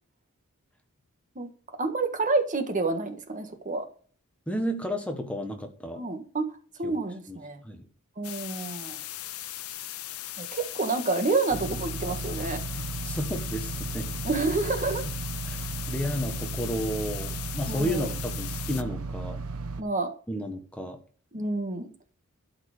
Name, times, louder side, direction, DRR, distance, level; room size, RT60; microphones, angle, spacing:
voice 1, 1.8-3.8 5.9-6.5 6.8-7.6 8.2-9.0 10.4-12.6 14.2-15.0 17.7-18.1 19.8-20.1 21.3-21.9, right 3 dB, 35° right, 7 dB, 1.6 m, -28 dB
voice 2, 4.5-6.0 6.8-6.9 7.3-7.4 7.6-7.9 12.7-14.2 15.4-19.4 20.3-21.0, equal, 5° left, 5 dB, 1.4 m, -32 dB
sound 1, 8.2-18.8, left 13 dB, 80° left, 0.8 m, -38 dB
sound 2, 11.5-19.8, right 3 dB, 85° right, 1.0 m, -35 dB
12.5 x 4.9 x 6.7 m, 0.43 s
head